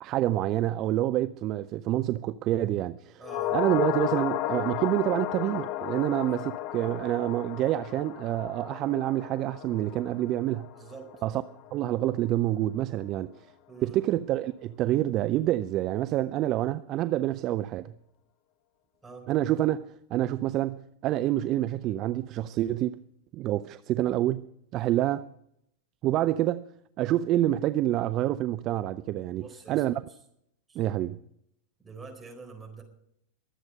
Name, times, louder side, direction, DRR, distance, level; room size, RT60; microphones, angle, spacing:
voice 1, 0.0-3.2 3.5-10.7 11.2-11.4 11.7-13.3 13.8-17.9 19.3-23.0 23.3-24.5 24.7-25.3 26.0-26.6 27.0-29.4 29.7-29.9 30.8-31.2, right 14 dB, 35° right, 0.4 m, -27 dB
sound 1, 3.2-11.7 12.0-12.1, left 14 dB, 45° left, 0.5 m, -34 dB
voice 2, 3.2-3.6 6.3-6.5 10.7-11.1 13.1-13.3 13.7-14.1 19.0-19.3 29.3-29.8 30.1-30.2 30.7-30.8 31.8-32.8, right 4 dB, 10° right, 4.3 m, -46 dB
23.0 x 8.0 x 5.4 m
figure-of-eight pair, 90°, 0 cm